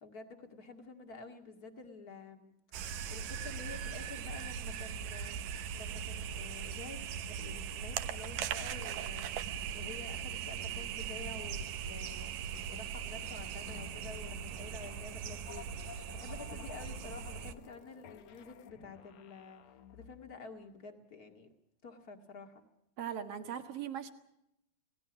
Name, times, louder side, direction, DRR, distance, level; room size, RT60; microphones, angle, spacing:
voice 1, 0.0-2.5 3.1-5.4 5.7-9.4 9.7-12.3 12.7-19.6 19.9-21.5 21.8-22.6, left 4 dB, 35° left, 4 dB, 1.7 m, -50 dB
sound 1, 2.7-17.5, right 8 dB, 70° right, 2.4 m, -40 dB
sound 2, 9.2-20.4, left 10 dB, 70° left, 1.5 m, -56 dB
voice 2, 23.0-24.1, right 9 dB, 50° right, 7 dB, 1.9 m, -39 dB
28.0 x 18.5 x 6.1 m, 0.83 s
omnidirectional pair, 4.4 m